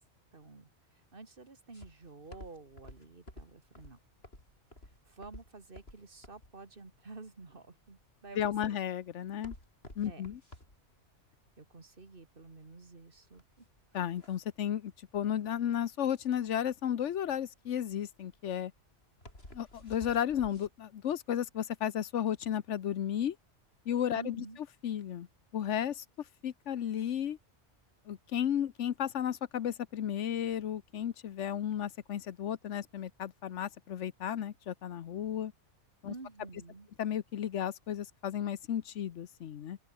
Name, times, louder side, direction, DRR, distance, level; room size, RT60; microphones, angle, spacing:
voice 1, 0.3-4.0 5.0-8.4 8.7-8.8 10.0-10.2 11.6-13.6 24.1-24.6 36.1-36.9, right 3 dB, 50° right, 2.7 m, -50 dB
sound 1, 1.7-20.7, left 1 dB, 60° left, 7.4 m, -53 dB
voice 2, 8.4-9.5 10.0-10.4 13.9-18.7 19.5-23.4 23.9-24.4 24.8-25.3 25.5-26.0 26.4-27.4 28.1-35.5 36.0-36.1 37.0-39.8, left 9 dB, 85° left, 1.2 m, -33 dB
open air
omnidirectional pair, 1.2 m